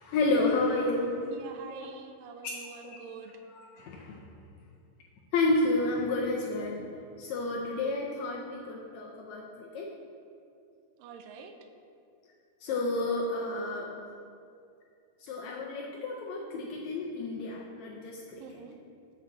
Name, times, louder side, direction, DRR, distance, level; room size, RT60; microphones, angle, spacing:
voice 1, 0.0-1.3 2.4-2.5 2.8-3.0 3.5-4.2 5.3-6.9 7.2-9.9 12.6-13.9 15.2-18.4, left 2 dB, 90° left, -2 dB, 1.5 m, -30 dB
voice 2, 1.3-3.4 11.0-11.5 18.4-18.8, right 5 dB, 85° right, 6 dB, 2.3 m, -46 dB
8.9 x 7.5 x 4.0 m, 2.5 s
omnidirectional pair, 4.1 m